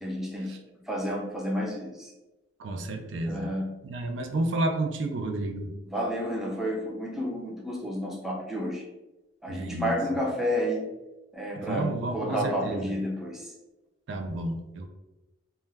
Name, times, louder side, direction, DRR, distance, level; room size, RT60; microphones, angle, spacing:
voice 1, 0.0-2.1 3.3-3.8 5.9-8.8 9.4-10.9 11.3-13.5, equal, ahead, -3 dB, 0.4 m, -31 dB
voice 2, 2.6-3.5 3.8-5.7 9.5-10.2 11.5-12.9 14.1-14.9, right 2 dB, 80° right, 5 dB, 0.4 m, -31 dB
2.2 x 2.1 x 3.2 m, 1.0 s
head